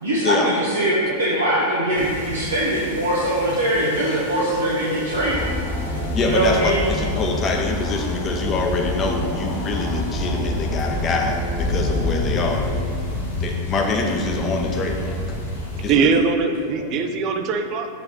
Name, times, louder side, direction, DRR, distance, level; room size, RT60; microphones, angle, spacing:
voice 1, 0.0-5.4 6.2-6.9, right 1 dB, 75° right, -6 dB, 1.0 m, -22 dB
sound 1, 1.9-15.9, left 2 dB, 65° left, 1.3 m, -32 dB
sound 2, 5.1-15.2, left 1 dB, 15° left, 1.1 m, -28 dB
voice 2, 6.1-12.7 13.4-15.1 15.8-16.1, left 3 dB, 30° left, 1 dB, 0.8 m, -25 dB
voice 3, 13.0-13.4 15.8-17.9, right 5 dB, 40° right, 6 dB, 0.5 m, -22 dB
7.0 x 3.6 x 5.3 m, 2.4 s
figure-of-eight pair, 90°, 0 cm